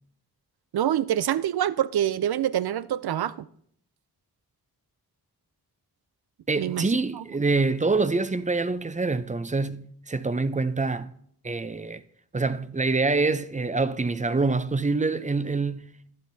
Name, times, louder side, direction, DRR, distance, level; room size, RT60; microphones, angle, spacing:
voice 1, 0.7-3.5 6.6-6.9 7.2-7.3, right 11 dB, 75° right, 0.5 m, -26 dB
voice 2, 6.5-11.1 11.4-12.0 12.3-15.9, right 3 dB, 20° right, 0.5 m, -25 dB
12.0 x 10.5 x 2.7 m
cardioid pair, 45°, 38 cm